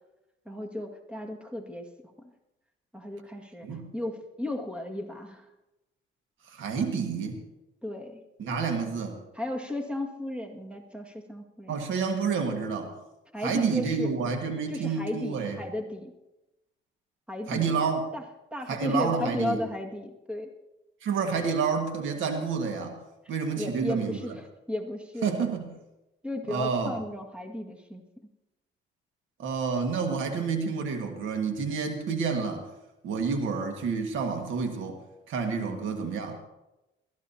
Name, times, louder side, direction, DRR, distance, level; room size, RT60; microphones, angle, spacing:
voice 1, 0.5-1.9 2.2-2.3 2.9-5.5 7.8-8.2 9.3-11.7 13.3-14.1 14.7-16.1 17.3-17.8 18.1-18.2 18.5-20.5 23.6-25.4 26.2-28.0 35.5-35.9, left 1 dB, 5° right, 2 dB, 1.9 m, -35 dB
voice 2, 6.5-7.4 8.4-9.2 11.7-12.9 13.4-15.6 17.5-18.0 18.7-19.6 21.0-23.0 23.3-24.2 25.2-25.7 26.5-26.9 29.4-32.7 33.0-35.0 35.3-36.4, right 5 dB, 80° right, 4 dB, 1.8 m, -29 dB
21.5 x 14.0 x 2.8 m, 0.97 s
cardioid pair, 90°, 20 cm